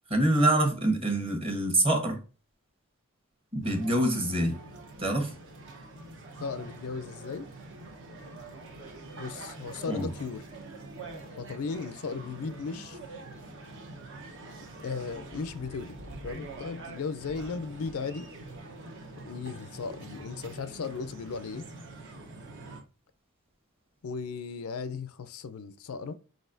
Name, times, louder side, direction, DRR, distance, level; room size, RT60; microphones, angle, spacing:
voice 1, 0.1-2.2 3.5-4.6 5.0-5.3 9.9-10.1, right 1 dB, 25° right, 1.1 m, -25 dB
sound 1, 3.6-22.8, right 2 dB, 60° right, 1.0 m, -45 dB
voice 2, 6.4-7.5 9.2-10.4 11.4-13.0 14.8-16.0 16.2-18.3 19.3-21.7 24.0-26.2, left 5 dB, 70° left, 0.4 m, -36 dB
4.9 x 4.1 x 2.6 m
head